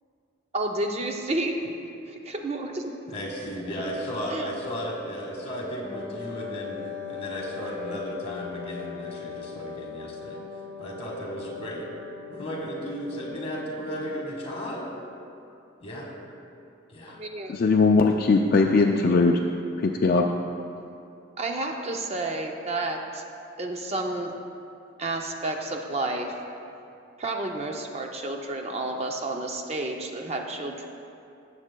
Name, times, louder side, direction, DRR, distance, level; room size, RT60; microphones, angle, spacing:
voice 1, 0.5-1.6 2.1-2.9 4.3-4.5 17.1-17.5 21.4-23.2 23.6-24.3 25.0-26.3 27.2-30.9, right 2 dB, 30° right, 2 dB, 0.5 m, -30 dB
voice 2, 3.1-6.8 7.1-10.4 10.8-11.9 12.3-14.8 15.8-16.1 16.9-17.2, equal, 30° left, -2 dB, 1.6 m, -34 dB
Wind instrument woodwind instrument, 5.8-13.9, left 7 dB, 10° left, 0.8 m, -39 dB
voice 3, 17.5-19.3 20.0-20.2, left 3 dB, 50° left, 2 dB, 0.4 m, -19 dB
16.5 x 7.3 x 2.2 m, 2.6 s
head